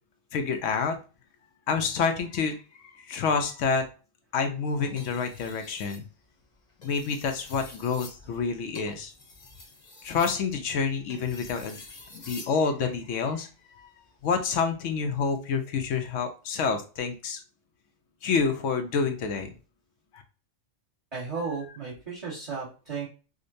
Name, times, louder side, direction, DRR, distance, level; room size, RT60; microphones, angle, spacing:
voice 1, 0.3-1.0 1.7-2.6 3.0-3.9 4.3-6.0 6.8-9.1 10.0-11.8 12.1-13.5 13.8-13.9 14.2-17.4 18.2-19.5 20.1-20.2, left 5 dB, 80° left, 6 dB, 0.9 m, -28 dB
sound 1, 4.8-6.1 6.7-12.6 14.0-14.3, left 3 dB, 40° left, 0.8 m, -47 dB
voice 2, 21.1-23.1, right 4 dB, 30° right, -8 dB, 1.3 m, -34 dB
4.9 x 2.2 x 2.6 m, 0.34 s
omnidirectional pair, 1.3 m